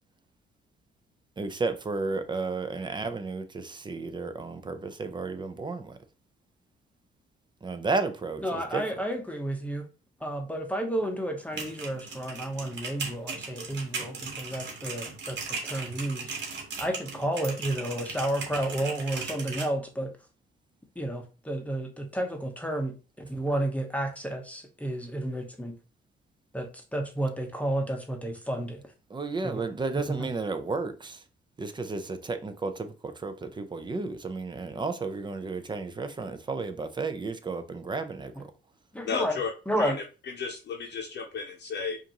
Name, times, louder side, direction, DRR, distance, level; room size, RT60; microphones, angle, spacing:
voice 1, 1.4-6.0 7.6-8.8 29.1-31.2 31.6-38.5, right 3 dB, 25° right, 0.6 m, -33 dB
voice 2, 8.4-9.8 10.2-16.3 16.8-20.1 21.0-25.7 26.5-28.8 29.4-29.6 38.9-39.3 39.7-40.0, right 1 dB, 5° left, 0.9 m, -31 dB
sound 1, 11.4-19.7, right 4 dB, 65° right, 1.5 m, -38 dB
voice 3, 39.0-39.5 39.8-42.0, left 5 dB, 60° left, 0.8 m, -33 dB
4.9 x 2.6 x 2.9 m
cardioid pair, 90°, 20 cm